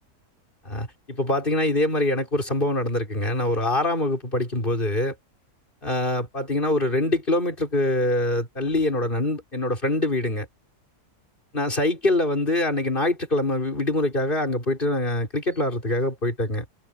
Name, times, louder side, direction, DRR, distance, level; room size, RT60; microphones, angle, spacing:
voice 1, 0.6-5.1 5.8-10.5 11.5-16.6, left 1 dB, 35° left, 6.1 m, -24 dB
omnidirectional pair, 1.6 m